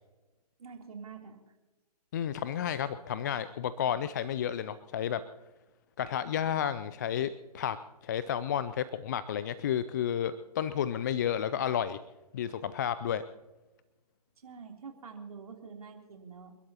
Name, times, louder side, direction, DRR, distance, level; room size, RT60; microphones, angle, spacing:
voice 1, 0.6-1.4 14.4-16.5, right 5 dB, 60° right, 2 dB, 3.3 m, -46 dB
voice 2, 2.1-5.2 6.0-7.8 8.0-12.0 12.3-13.2, left 9 dB, 30° left, 14 dB, 0.4 m, -31 dB
29.0 x 12.5 x 2.9 m, 1.1 s
figure-of-eight pair, 135°, 21 cm